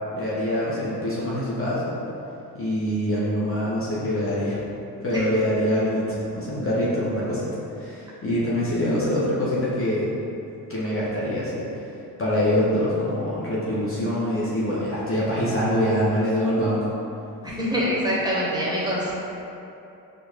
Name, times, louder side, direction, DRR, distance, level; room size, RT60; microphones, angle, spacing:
voice 1, 0.1-2.0 2.5-4.6 5.0-7.5 7.8-10.1 10.7-11.6 12.2-16.9 17.4-17.5, equal, 25° left, -8 dB, 1.0 m, -24 dB
voice 2, 17.4-19.1, equal, 10° right, -8 dB, 1.2 m, -24 dB
4.4 x 2.5 x 3.5 m, 2.8 s
hypercardioid pair, 50°, 49 cm